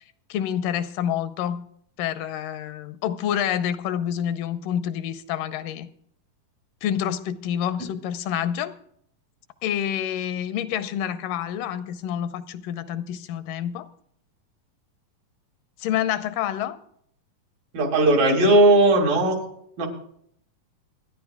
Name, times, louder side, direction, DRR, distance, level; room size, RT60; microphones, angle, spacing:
voice 1, 0.3-1.6 2.0-5.9 6.8-8.7 9.6-13.9 15.8-16.8, left 10 dB, 85° left, 2.3 m, -28 dB
voice 2, 17.7-19.4 19.8-19.9, right 2 dB, 85° right, 4.2 m, -17 dB
29.0 x 10.0 x 2.3 m
omnidirectional pair, 3.9 m